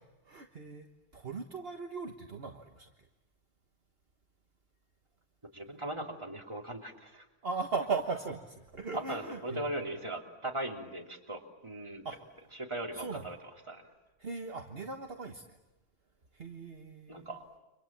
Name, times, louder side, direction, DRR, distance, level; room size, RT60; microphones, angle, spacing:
voice 1, 0.3-0.9 1.1-2.9 7.4-9.7 12.0-12.2 12.9-13.2 14.2-15.5 16.3-17.3, right 4 dB, 50° right, 3 dB, 1.6 m, -38 dB
voice 2, 5.5-7.2 8.9-12.0 12.5-13.4 13.7-13.8 17.1-17.4, right 1 dB, 20° right, 1 dB, 3.1 m, -39 dB
29.5 x 26.0 x 7.5 m, 1.0 s
omnidirectional pair, 1.3 m